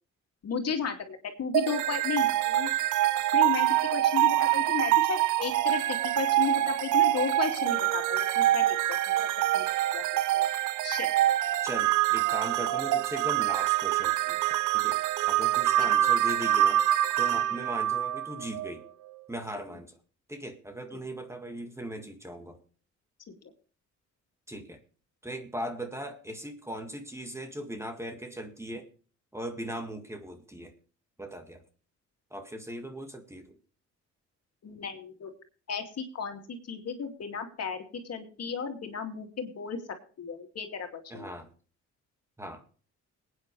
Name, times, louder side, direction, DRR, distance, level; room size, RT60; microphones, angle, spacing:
voice 1, 0.4-2.7 3.3-8.8 9.1-9.3 9.5-9.6 9.9-10.0 10.3-10.4 10.8-11.1 34.6-35.3 35.7-39.8 40.2-41.3, left 6 dB, 55° left, 4 dB, 2.5 m, -34 dB
sound 1, 1.5-18.7, right 13 dB, 85° right, 0.8 m, -25 dB
voice 2, 11.6-15.0 15.3-16.8 17.2-18.8 19.3-20.0 20.3-22.6 24.5-24.8 25.2-28.9 29.3-30.7 31.2-31.6 32.3-33.6 41.1-41.5 42.4-42.6, right 1 dB, 10° right, 5 dB, 1.9 m, -39 dB
21.0 x 9.4 x 3.3 m, 0.40 s
cardioid pair, 90°, 30 cm